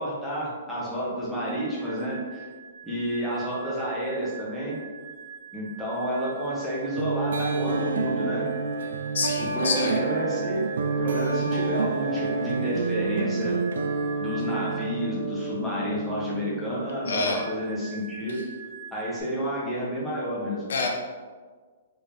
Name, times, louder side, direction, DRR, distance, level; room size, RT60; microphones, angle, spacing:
voice 1, 0.0-2.4 2.8-4.8 5.5-8.5 9.4-10.7 11.0-13.6 14.2-18.4 18.9-20.6, equal, ahead, -9 dB, 0.8 m, -30 dB
sound 1, 1.4-15.1 17.0-19.2, right 7 dB, 55° left, 1.1 m, -44 dB
sound 2, 7.0-17.6, right 4 dB, 85° right, 0.4 m, -29 dB
voice 2, 9.1-10.0 17.1-17.4 18.3-18.4 20.7-20.9, left 4 dB, 75° left, 2 dB, 0.6 m, -27 dB
3.6 x 3.4 x 2.6 m, 1.5 s
hypercardioid pair, 170°, 0 cm